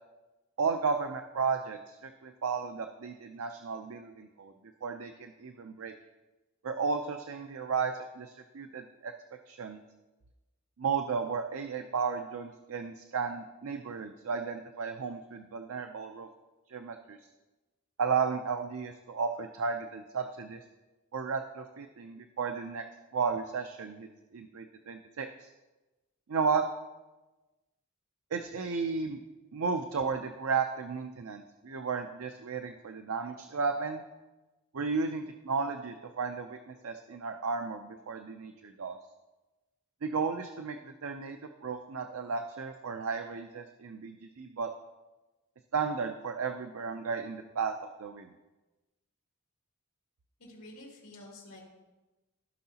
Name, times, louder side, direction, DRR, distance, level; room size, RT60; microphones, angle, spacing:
voice 1, 0.6-4.5 4.8-5.9 6.6-9.1 9.5-9.8 10.8-16.3 16.7-17.2 18.0-20.6 21.1-22.8 23.1-24.1 24.3-25.5 26.3-26.7 28.3-29.2 29.5-34.0 34.7-39.0 40.0-44.7 45.7-48.3, right 5 dB, 75° right, 6 dB, 0.5 m, -34 dB
voice 2, 50.4-51.7, left 1 dB, 75° left, -3 dB, 2.7 m, -49 dB
15.5 x 5.5 x 2.8 m, 1.1 s
head